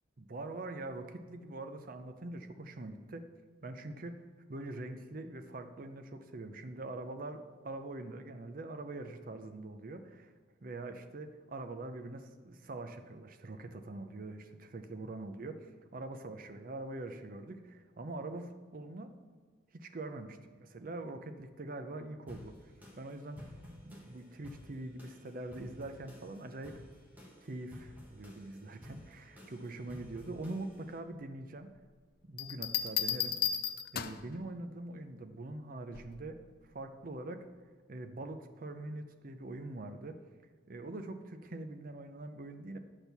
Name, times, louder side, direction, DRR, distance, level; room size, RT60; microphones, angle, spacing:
voice 1, 0.2-3.3 3.6-4.2 4.5-10.3 10.6-19.1 19.7-22.6 23.0-26.8 27.4-31.7 32.2-33.4 33.9-36.4 36.7-37.5 37.9-40.2 40.7-42.8, right 2 dB, 45° right, 8 dB, 0.6 m, -43 dB
sound 1, 22.3-31.0, left 1 dB, 10° right, 1.4 m, -54 dB
sound 2, 32.4-34.3 35.9-36.3, left 9 dB, 50° left, 0.4 m, -34 dB
9.7 x 4.5 x 6.8 m, 1.5 s
head